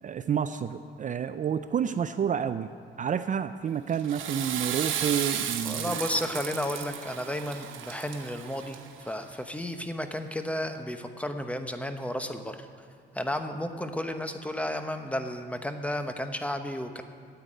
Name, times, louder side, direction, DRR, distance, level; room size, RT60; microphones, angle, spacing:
voice 1, 0.0-2.7 3.0-6.0, right 8 dB, 40° right, 11 dB, 0.4 m, -29 dB
Water / Toilet flush, 3.9-9.1, right 9 dB, 80° right, 1.0 m, -34 dB
voice 2, 5.6-12.7 13.1-17.0, left 1 dB, 5° left, 7 dB, 0.9 m, -33 dB
9.4 x 8.1 x 9.0 m, 2.3 s
cardioid pair, 90°, 20 cm